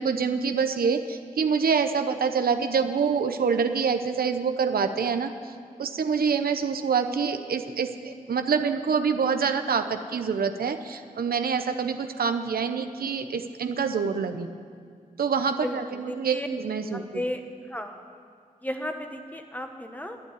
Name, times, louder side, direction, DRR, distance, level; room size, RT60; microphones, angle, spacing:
voice 1, 0.0-5.3 5.8-14.5 15.2-17.2, right 6 dB, 90° right, 8 dB, 0.7 m, -26 dB
voice 2, 15.6-16.5 17.1-17.4 17.7-18.0 18.6-20.2, left 1 dB, 10° left, 5 dB, 1.3 m, -34 dB
11.5 x 9.4 x 9.6 m, 2.2 s
cardioid pair, 65°, 15 cm